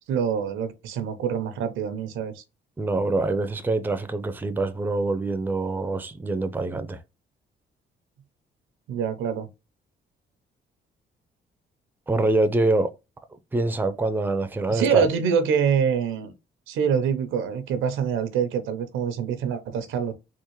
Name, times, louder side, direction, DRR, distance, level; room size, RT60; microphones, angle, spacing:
voice 1, 0.1-2.4 8.9-9.5 14.7-16.3 16.7-20.1, right 7 dB, 85° right, 0.7 m, -25 dB
voice 2, 2.8-7.0 12.1-12.9 13.5-15.1, right 2 dB, 10° right, 0.5 m, -25 dB
3.6 x 2.4 x 3.0 m
cardioid pair, 90°, 20 cm